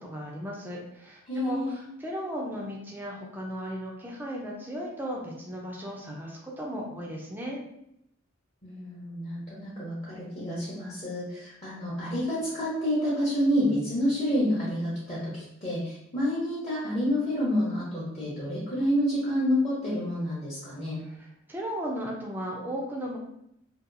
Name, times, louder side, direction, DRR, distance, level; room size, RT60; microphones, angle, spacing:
voice 1, 0.0-1.7 2.0-7.6 21.0-21.1 21.5-23.2, equal, 10° right, -2 dB, 0.3 m, -35 dB
voice 2, 1.3-1.7 8.6-21.0, equal, 30° left, -9 dB, 0.6 m, -28 dB
2.7 x 2.2 x 2.5 m, 0.78 s
head